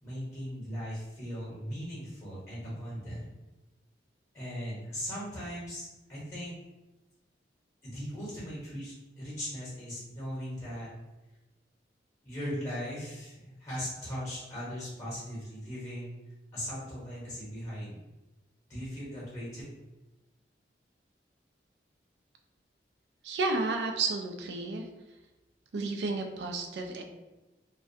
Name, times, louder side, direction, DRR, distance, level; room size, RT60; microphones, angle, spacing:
voice 1, 0.0-3.3 4.3-6.5 7.8-10.9 12.2-16.1 16.5-18.0 18.7-19.6, equal, 15° left, -8 dB, 0.8 m, -38 dB
voice 2, 23.2-24.8 25.7-27.0, right 3 dB, 75° right, 4 dB, 0.4 m, -31 dB
2.3 x 2.1 x 2.6 m, 1.1 s
head